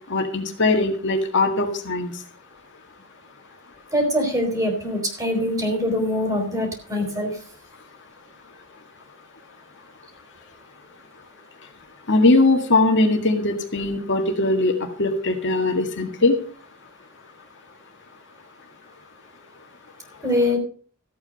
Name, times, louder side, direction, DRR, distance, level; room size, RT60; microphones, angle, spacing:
voice 1, 0.1-2.1 12.1-16.4, left 2 dB, 55° left, 3 dB, 1.9 m, -20 dB
voice 2, 3.9-7.3 20.2-20.6, left 1 dB, 15° right, 3 dB, 4.5 m, -23 dB
14.5 x 8.7 x 5.4 m, 0.43 s
head